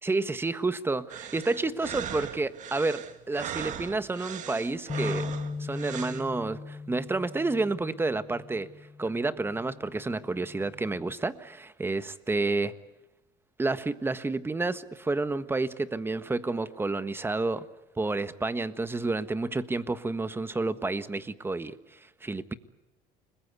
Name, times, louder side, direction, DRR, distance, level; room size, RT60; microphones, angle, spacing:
voice 1, 0.0-5.3 5.6-8.7 9.0-12.7 13.6-17.7 18.0-22.5, right 3 dB, 15° right, 12 dB, 1.5 m, -30 dB
sound 1, 1.1-6.3, right 9 dB, 55° right, 2.1 m, -39 dB
sound 2, 4.9-11.1, left 4 dB, 20° left, 0.9 m, -39 dB
29.5 x 21.5 x 8.3 m, 0.94 s
supercardioid pair, 105°, 16 cm